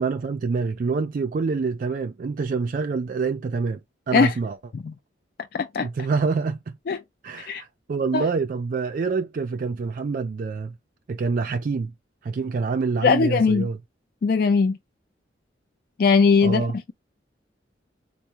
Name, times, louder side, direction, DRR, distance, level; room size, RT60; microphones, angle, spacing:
voice 1, 0.0-3.8 4.1-4.6 5.8-6.8 7.2-10.7 11.1-11.9 12.2-13.8 16.4-16.8, right 4 dB, 50° right, 0.3 m, -26 dB
voice 2, 5.5-5.9 6.9-7.0 7.5-7.6 8.1-8.2 13.0-13.7 14.2-14.8 16.0-16.9, left 5 dB, 55° left, 0.3 m, -20 dB
4.6 x 2.0 x 2.8 m
head